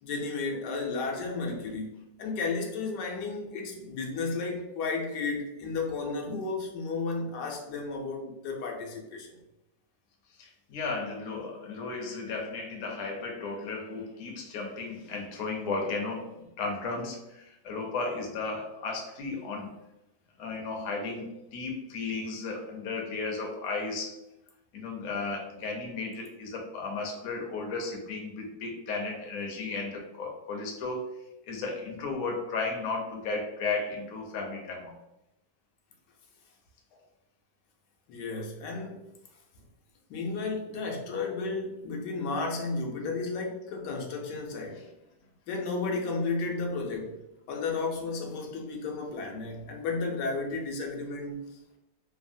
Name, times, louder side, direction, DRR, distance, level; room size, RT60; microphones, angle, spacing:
voice 1, 0.0-1.9 2.2-9.4 38.1-39.0 40.1-44.8 45.5-47.2 47.5-51.4, left 3 dB, 85° left, 0 dB, 1.2 m, -33 dB
voice 2, 10.4-19.8 20.4-24.1 24.7-34.9, left 3 dB, 65° left, 1 dB, 0.8 m, -34 dB
3.3 x 2.0 x 2.5 m, 0.90 s
omnidirectional pair, 1.8 m